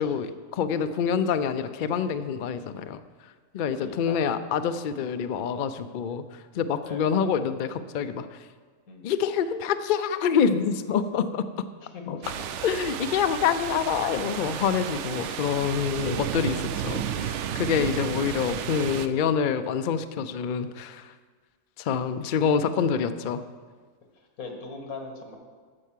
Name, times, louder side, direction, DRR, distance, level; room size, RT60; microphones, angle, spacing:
voice 1, 0.0-3.0 3.5-8.5 9.0-11.5 12.1-12.2 12.6-21.1 21.8-23.4, left 7 dB, 65° left, 10 dB, 0.4 m, -26 dB
voice 2, 3.8-4.3 6.1-6.2 6.8-7.1 8.9-9.1 11.9-12.0 12.4-12.5 18.7-19.0 24.2-25.3, left 4 dB, 90° left, 3 dB, 1.9 m, -40 dB
sound 1, 12.2-19.1, right 9 dB, 65° right, 0.8 m, -32 dB
13.0 x 4.6 x 7.4 m, 1.5 s
omnidirectional pair, 1.5 m